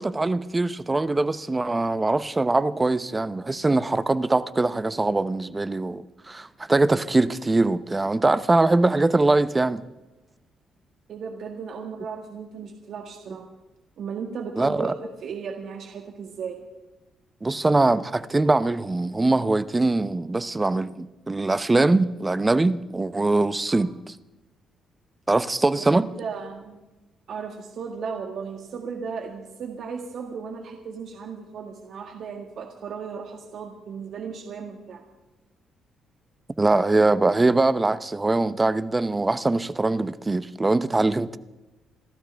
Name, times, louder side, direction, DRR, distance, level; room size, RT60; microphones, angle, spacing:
voice 1, 0.0-9.8 14.6-14.9 17.4-24.1 25.3-26.1 36.6-41.4, right 2 dB, 20° right, 0.7 m, -22 dB
voice 2, 11.1-13.5 14.0-16.6 23.7-23.9 25.8-26.8 27.3-35.0, right 6 dB, 65° right, 1.8 m, -36 dB
28.5 x 13.0 x 3.5 m
cardioid pair, 90°, 0 cm